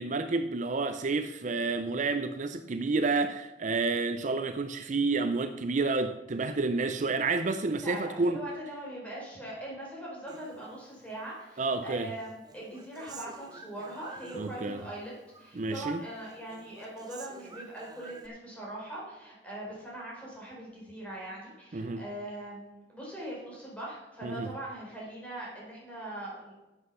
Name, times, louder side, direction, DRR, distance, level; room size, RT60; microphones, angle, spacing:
voice 1, 0.0-8.4 11.6-12.1 14.4-14.8 15.6-16.0 21.7-22.0 24.2-24.5, right 3 dB, 45° right, 0.5 m, -30 dB
voice 2, 7.8-26.5, right 1 dB, 10° left, 4.7 m, -41 dB
Human voice, 10.3-11.4 11.8-15.0 15.3-16.0 16.3-18.3, right 3 dB, 25° right, 0.8 m, -50 dB
11.5 x 8.0 x 5.6 m
head